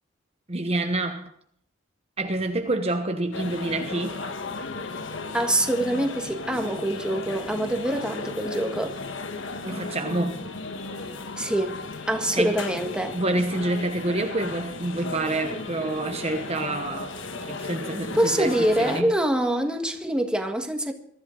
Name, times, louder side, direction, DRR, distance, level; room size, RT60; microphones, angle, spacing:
voice 1, 0.5-1.3 2.2-4.2 9.6-10.5 12.3-12.6 13.1-17.1 17.4-19.1, right 2 dB, 30° right, 1.1 m, -27 dB
sound 1, 3.3-19.0, left 3 dB, 70° left, 1.4 m, -35 dB
voice 2, 5.3-9.0 11.4-11.8 12.1-13.2 18.1-20.9, right 1 dB, 5° right, 1.6 m, -25 dB
22.5 x 13.5 x 3.9 m
head